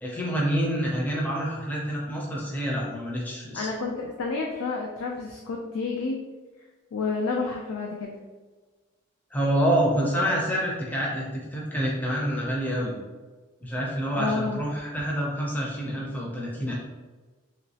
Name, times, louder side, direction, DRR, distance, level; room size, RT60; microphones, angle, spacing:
voice 1, 0.0-3.7 9.3-12.9 13.6-16.7, equal, 10° left, -3 dB, 0.4 m, -27 dB
voice 2, 3.5-6.2 6.9-8.2 14.1-14.6, left 4 dB, 85° left, 1 dB, 0.4 m, -30 dB
3.0 x 3.0 x 2.7 m, 1.3 s
head